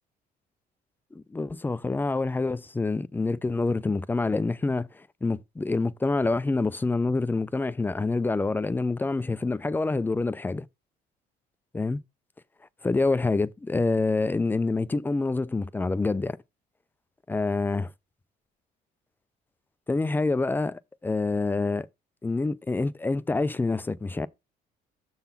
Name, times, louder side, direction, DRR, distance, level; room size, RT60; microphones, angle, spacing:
voice 1, 1.1-10.7 11.7-12.0 12.8-16.4 17.3-17.9 19.9-21.9 22.2-24.3, left 3 dB, 10° left, 0.4 m, -27 dB
6.7 x 4.0 x 5.8 m
cardioid pair, 110°, 17 cm